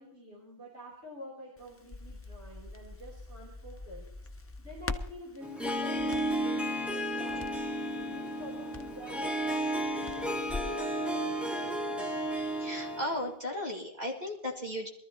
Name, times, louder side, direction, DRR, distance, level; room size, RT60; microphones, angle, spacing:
voice 1, 0.0-4.1 4.6-7.5 7.9-12.1, equal, 70° right, -4 dB, 3.8 m, -48 dB
Crackle, 1.6-10.8, left 3 dB, 20° left, 0.3 m, -44 dB
Harp, 5.4-13.3, right 1 dB, ahead, 1.2 m, -33 dB
voice 2, 12.6-14.9, left 1 dB, 40° right, -1 dB, 2.2 m, -35 dB
22.0 x 13.5 x 2.9 m, 0.73 s
omnidirectional pair, 1.2 m